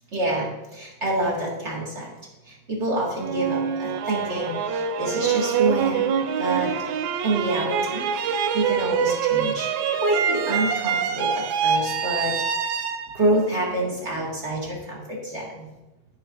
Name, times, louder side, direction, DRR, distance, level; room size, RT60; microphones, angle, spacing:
voice 1, 0.1-2.1 2.4-6.7 7.2-8.0 8.5-9.7 10.0-12.3 13.1-15.7, right 1 dB, 30° right, -4 dB, 1.6 m, -27 dB
sound 1, 3.2-14.2, right 7 dB, 85° right, 1.6 m, -25 dB
14.0 x 6.3 x 2.6 m, 1.0 s
omnidirectional pair, 4.0 m